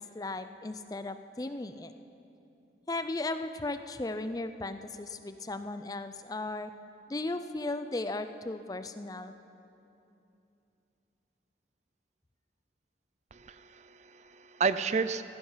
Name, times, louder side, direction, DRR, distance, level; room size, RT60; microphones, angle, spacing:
voice 1, 0.0-1.9 2.9-6.7 7.1-9.3, left 2 dB, 20° left, 10 dB, 0.5 m, -36 dB
voice 2, 13.3-15.2, right 5 dB, 40° right, 12 dB, 0.4 m, -31 dB
16.0 x 15.0 x 5.6 m, 2.8 s
head